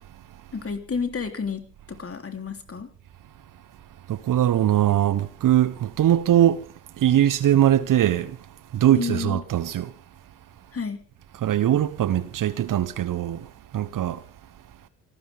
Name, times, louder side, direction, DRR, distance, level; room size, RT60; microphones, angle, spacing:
voice 1, 0.5-2.9 8.9-9.4 10.7-11.1, left 5 dB, 35° left, 3.4 m, -31 dB
voice 2, 4.1-6.6 7.0-8.3 8.7-9.9 11.4-13.4 13.7-14.2, right 11 dB, 55° right, 1.2 m, -21 dB
27.5 x 13.5 x 3.6 m
hypercardioid pair, 45°, 39 cm